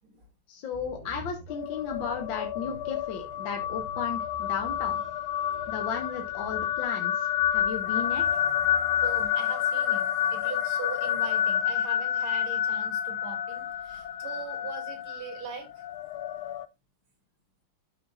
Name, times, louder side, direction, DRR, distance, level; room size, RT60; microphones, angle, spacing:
voice 1, 0.5-5.0 5.7-7.1 7.5-8.2, left 6 dB, 65° left, 1.8 m, -35 dB
sound 1, 0.7-9.3, equal, 30° right, 1.9 m, -48 dB
sound 2, 1.5-16.7, left 10 dB, 80° left, 1.4 m, -29 dB
voice 2, 9.0-15.8, right 4 dB, 85° right, 3.4 m, -41 dB
13.0 x 6.0 x 2.5 m
omnidirectional pair, 2.3 m